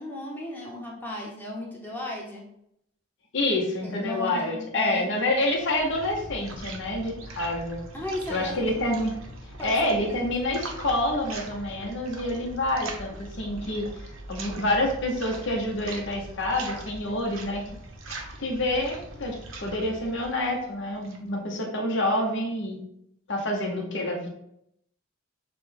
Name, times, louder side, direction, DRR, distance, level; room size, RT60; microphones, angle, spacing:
voice 1, 0.0-2.4 3.8-5.1 7.9-8.6 9.6-10.3, left 2 dB, 10° left, -3 dB, 1.0 m, -35 dB
voice 2, 3.3-7.8 8.3-9.2 9.6-17.6 18.4-22.8 23.3-24.3, left 1 dB, 60° left, 0 dB, 1.0 m, -27 dB
sound 1, 5.3-21.3, right 2 dB, 75° right, 0.8 m, -41 dB
6.7 x 2.3 x 3.4 m, 0.76 s
head